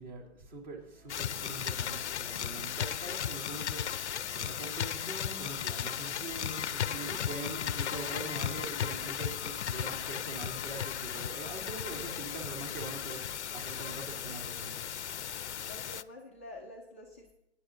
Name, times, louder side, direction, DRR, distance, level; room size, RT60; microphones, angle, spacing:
voice 1, 0.0-14.9, right 3 dB, 40° right, 1 dB, 3.2 m, -43 dB
sound 1, 0.8-8.2, right 2 dB, 10° right, 1.9 m, -62 dB
sound 2, 1.1-16.0, left 9 dB, 75° left, 0.6 m, -36 dB
voice 2, 6.9-8.2 11.9-12.8 15.6-17.3, left 1 dB, 10° left, -5 dB, 0.4 m, -51 dB
22.0 x 9.7 x 2.6 m, 0.87 s
hypercardioid pair, 150°, 35 cm